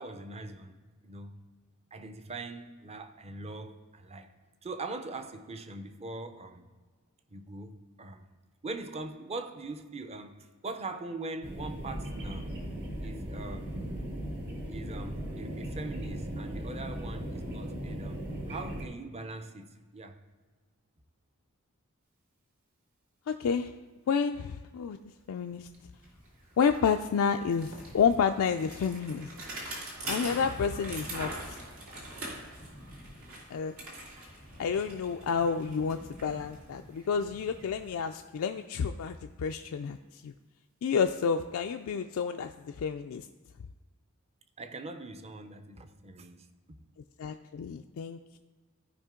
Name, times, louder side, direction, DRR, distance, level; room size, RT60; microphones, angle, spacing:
voice 1, 0.0-1.4 1.9-4.3 4.6-6.7 7.3-8.3 8.6-12.5 13.0-13.7 14.7-18.2 18.5-20.2 44.6-46.8, right 2 dB, 30° right, 8 dB, 0.6 m, -42 dB
sound 1, 11.4-18.9, equal, 60° right, 1.7 m, -38 dB
voice 2, 23.3-23.7 24.1-25.0 25.3-25.7 26.6-29.3 30.1-31.6 33.5-33.8 34.6-40.3 40.8-43.3 47.2-48.4, left 6 dB, 70° left, 6 dB, 0.3 m, -30 dB
Bicycle, 25.2-25.3 25.6-38.5, right 1 dB, 75° right, 2.3 m, -43 dB
14.0 x 5.0 x 3.7 m, 1.4 s
head